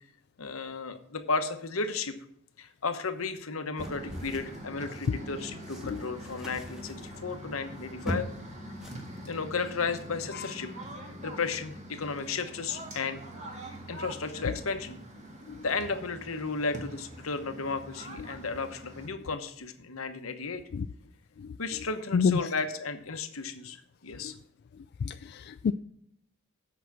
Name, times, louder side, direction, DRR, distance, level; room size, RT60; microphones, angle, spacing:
voice 1, 0.4-2.2 2.6-8.3 9.3-10.7 11.2-13.2 13.9-15.0 15.6-20.6 21.6-24.3, left 4 dB, 75° left, 8 dB, 1.1 m, -34 dB
sound 1, 3.8-5.2 5.6-8.5 8.8-9.3 9.7-9.9, equal, ahead, 1.7 m, -40 dB
sound 2, 3.8-19.1, right 1 dB, 35° right, 1.9 m, -44 dB
voice 2, 22.1-22.5 24.2-24.3 25.0-25.7, left 5 dB, 50° left, 10 dB, 0.3 m, -29 dB
8.2 x 5.9 x 7.4 m, 0.70 s
head